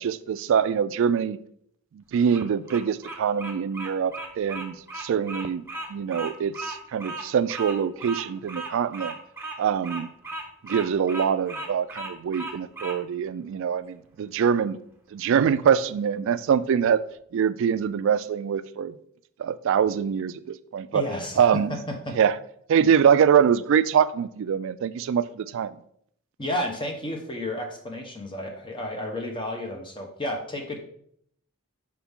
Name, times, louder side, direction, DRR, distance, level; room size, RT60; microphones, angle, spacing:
voice 1, 0.0-1.4 1.9-5.6 5.9-9.1 9.6-10.1 10.6-14.8 15.1-17.0 17.3-19.0 19.4-21.0 21.4-21.8 22.2-22.4 22.7-25.8, right 7 dB, 65° right, 0.3 m, -24 dB
Bird vocalization bird call bird song, 2.1-13.0, right 2 dB, 10° right, 0.8 m, -36 dB
voice 2, 20.9-21.8 22.0-22.1 26.4-30.8, left 1 dB, 25° left, 1.0 m, -32 dB
5.9 x 4.7 x 3.6 m
head